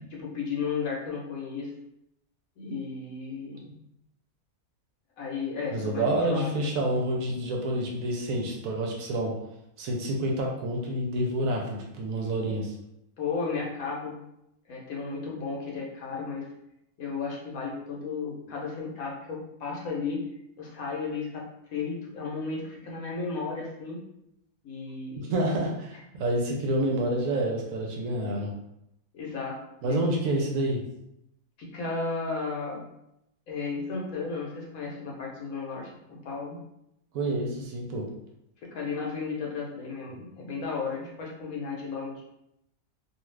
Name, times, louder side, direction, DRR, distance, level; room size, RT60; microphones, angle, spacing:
voice 1, 0.1-1.7 2.6-3.6 5.2-6.7 13.2-14.2 14.7-16.5 17.0-20.2 20.6-21.4 21.7-24.0 24.6-25.5 29.1-29.6 29.8-30.0 31.6-32.9 33.5-36.6 38.7-42.2, left 4 dB, 70° left, -2 dB, 1.1 m, -34 dB
voice 2, 5.7-9.3 9.8-12.7 25.3-28.5 29.8-30.8 37.1-38.1, right 1 dB, 70° right, -1 dB, 1.0 m, -28 dB
2.6 x 2.3 x 3.1 m, 0.82 s
omnidirectional pair, 1.6 m